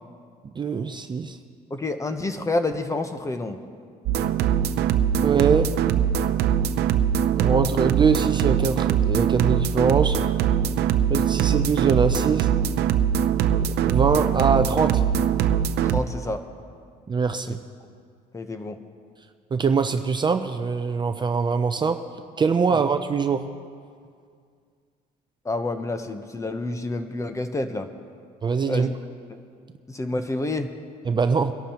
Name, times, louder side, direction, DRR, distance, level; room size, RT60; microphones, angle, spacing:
voice 1, 0.4-1.4 5.2-5.8 7.3-10.2 11.1-12.5 13.8-15.0 17.1-17.6 19.5-22.0 22.4-23.5 28.4-28.9 31.1-31.5, right 5 dB, 25° right, 8 dB, 0.5 m, -23 dB
voice 2, 1.7-3.6 15.8-16.4 17.5-17.6 18.3-18.8 22.7-22.8 25.4-27.9 28.7-28.9 29.9-30.7, left 2 dB, 20° left, 8 dB, 0.9 m, -28 dB
sound 1, 4.1-16.0, right 9 dB, 75° right, 0.6 m, -22 dB
23.0 x 11.5 x 2.9 m, 2.2 s
cardioid pair, 110°, 17 cm